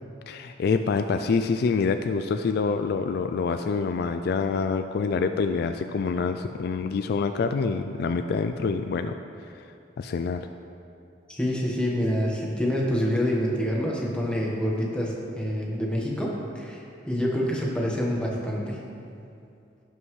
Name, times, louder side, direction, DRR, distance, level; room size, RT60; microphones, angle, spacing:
voice 1, 0.3-9.1 10.0-10.5, left 5 dB, 55° left, 8 dB, 0.3 m, -26 dB
voice 2, 11.3-18.8, equal, 5° left, -3 dB, 1.3 m, -27 dB
16.5 x 5.5 x 3.2 m, 2.6 s
head